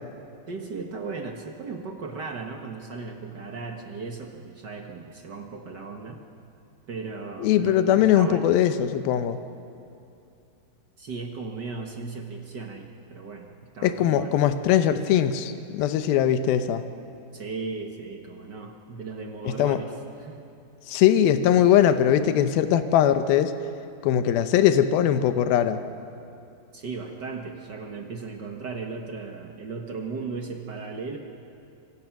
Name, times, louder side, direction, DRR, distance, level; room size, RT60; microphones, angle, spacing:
voice 1, 0.5-6.2 6.9-8.5 11.0-13.5 13.7-14.4 17.3-20.4 26.7-31.2, right 4 dB, 60° right, 2 dB, 1.1 m, -36 dB
voice 2, 7.4-9.4 13.8-16.8 19.6-19.8 20.9-23.5 24.0-25.8, left 10 dB, 85° left, 9 dB, 2.8 m, -21 dB
26.0 x 25.0 x 6.1 m, 2.7 s
omnidirectional pair, 4.2 m